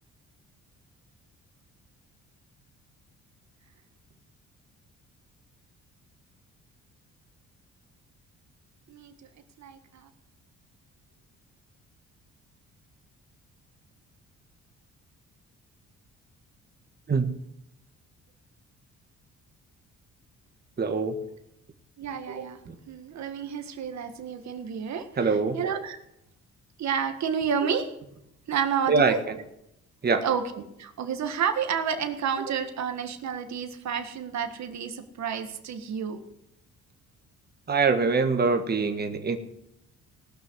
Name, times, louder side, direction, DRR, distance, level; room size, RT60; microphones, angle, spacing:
voice 1, 9.6-10.1 22.0-22.6 22.8-26.0 26.8-27.9 28.5-29.2 30.2-36.2, right 7 dB, 65° right, 7 dB, 1.7 m, -30 dB
voice 2, 20.8-21.2 22.7-22.8 25.2-25.6 28.9-29.3 30.0-30.3 37.7-39.4, right 4 dB, 35° right, 6 dB, 1.6 m, -24 dB
18.5 x 6.3 x 7.9 m, 0.80 s
cardioid pair, 90°, 30 cm